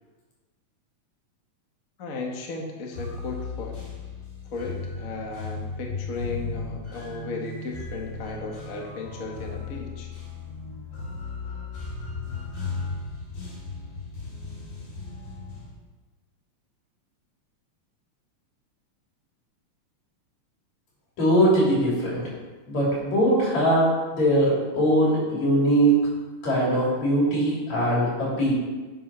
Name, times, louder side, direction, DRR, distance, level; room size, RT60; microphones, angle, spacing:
voice 1, 2.0-3.8 4.5-10.1, left 3 dB, 45° left, 0 dB, 1.1 m, -35 dB
sound 1, 2.9-15.7, left 4 dB, 85° left, 4.1 m, -36 dB
voice 2, 21.2-22.3 22.7-25.9 26.4-28.5, right 1 dB, 65° left, -6 dB, 4.3 m, -21 dB
7.7 x 7.3 x 5.5 m, 1.3 s
omnidirectional pair, 3.4 m